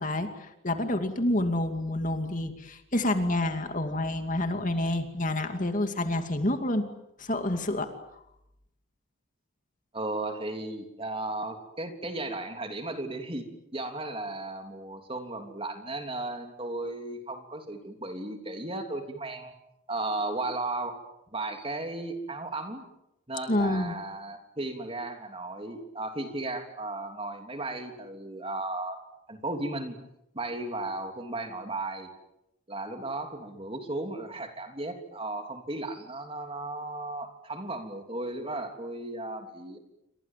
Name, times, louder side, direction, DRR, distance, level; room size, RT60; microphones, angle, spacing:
voice 1, 0.0-6.9 7.2-7.9 23.5-23.9, left 1 dB, 40° left, 6 dB, 2.5 m, -28 dB
voice 2, 9.9-13.5 13.7-19.5 19.9-21.0 21.3-22.8 23.3-29.0 29.3-30.0 30.3-32.1 32.7-39.8, right 2 dB, 25° right, 5 dB, 3.3 m, -35 dB
29.0 x 25.0 x 7.6 m, 0.85 s
head